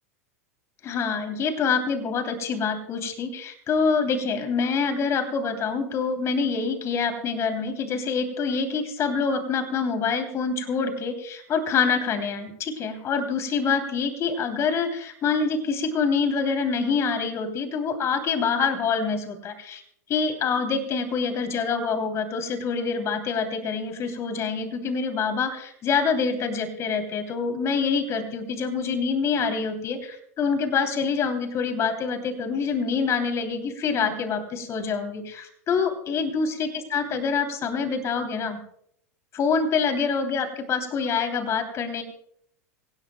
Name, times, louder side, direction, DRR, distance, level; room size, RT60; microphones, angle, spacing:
voice 1, 0.8-19.8 20.1-38.6 39.3-42.0, left 5 dB, 35° left, 6 dB, 2.9 m, -26 dB
25.0 x 17.0 x 2.2 m, 0.68 s
hypercardioid pair, 95°, 8 cm